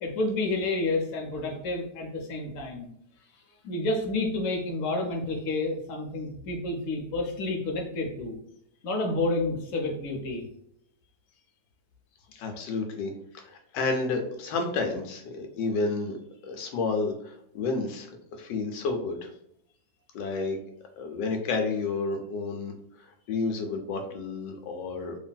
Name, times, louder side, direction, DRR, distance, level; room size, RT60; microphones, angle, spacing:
voice 1, 0.0-2.9 3.6-8.4 8.8-10.4, left 2 dB, 65° left, 2 dB, 0.9 m, -29 dB
voice 2, 12.3-16.2 16.4-19.3 20.1-20.6 21.0-25.2, left 3 dB, 85° left, 4 dB, 1.2 m, -31 dB
3.2 x 2.5 x 2.2 m, 0.73 s
omnidirectional pair, 1.8 m